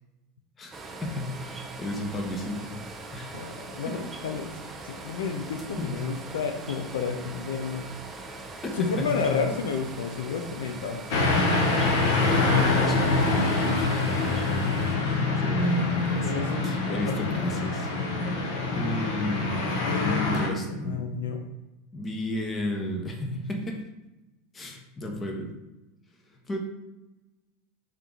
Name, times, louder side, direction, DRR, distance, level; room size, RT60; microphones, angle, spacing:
voice 1, 0.6-2.7 3.1-3.5 5.8-6.0 8.6-9.4 12.6-14.2 14.5-17.9 18.7-19.6 20.0-21.4 21.9-23.8 24.5-25.5 26.5-26.6, left 1 dB, 25° left, 2 dB, 0.8 m, -32 dB
sound 1, 0.7-15.0, right 3 dB, 25° right, 0.5 m, -41 dB
voice 2, 3.3-4.5 4.8-7.9 8.7-11.7 16.2-17.6 18.0-18.1 19.8-21.4, left 5 dB, 80° left, 4 dB, 0.4 m, -32 dB
sound 2, 11.1-20.5, left 3 dB, 65° left, 0.9 m, -25 dB
3.6 x 2.8 x 3.8 m, 1.0 s
hypercardioid pair, 105°, 0 cm